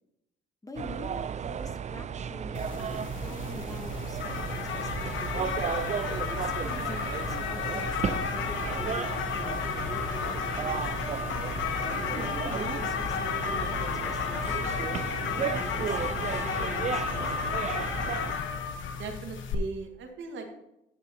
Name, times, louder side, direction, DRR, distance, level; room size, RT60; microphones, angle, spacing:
voice 1, 0.6-5.6 6.3-10.9 11.8-17.4, left 1 dB, 15° left, 6 dB, 1.1 m, -45 dB
sound 1, 0.8-18.3, right 7 dB, 35° right, 0.4 m, -34 dB
sound 2, 2.5-19.5, left 7 dB, 75° left, 0.9 m, -33 dB
voice 2, 19.0-20.5, right 4 dB, 70° right, 3 dB, 1.6 m, -38 dB
11.0 x 6.7 x 2.8 m, 0.84 s
cardioid pair, 90°, 20 cm